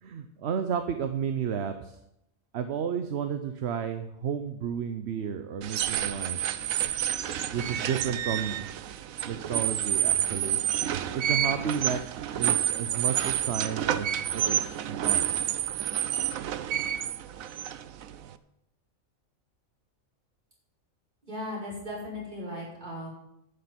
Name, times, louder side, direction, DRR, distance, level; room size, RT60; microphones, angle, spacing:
voice 1, 0.0-2.0 2.5-6.4 7.5-8.6 9.3-10.6 11.1-12.0 12.3-14.6 14.9-15.4, right 7 dB, 55° right, 9 dB, 1.0 m, -32 dB
sound 1, 5.6-18.3, right 10 dB, 80° right, 1.1 m, -29 dB
voice 2, 21.2-23.1, left 1 dB, 35° right, -5 dB, 5.7 m, -37 dB
11.5 x 6.7 x 9.5 m, 0.79 s
omnidirectional pair, 1.4 m